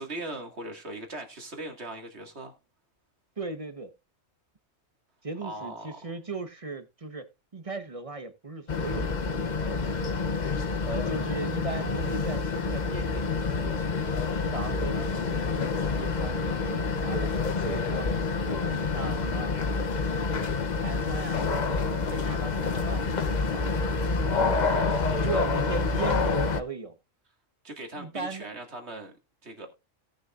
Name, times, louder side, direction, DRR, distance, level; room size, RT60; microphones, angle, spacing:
voice 1, 0.0-2.5 5.4-6.0 24.3-25.5 27.6-29.1 29.4-29.7, right 2 dB, 60° right, 2.4 m, -38 dB
voice 2, 3.4-3.9 5.2-7.3 7.5-10.2 10.8-13.8 14.4-17.3 17.6-18.1 18.5-19.6 20.7-23.7 24.4-24.6 25.2-27.0 28.0-28.5, right 3 dB, 30° right, 1.2 m, -37 dB
sound 1, 8.7-26.6, left 4 dB, 40° left, 0.9 m, -28 dB
17.5 x 6.5 x 2.5 m
omnidirectional pair, 1.3 m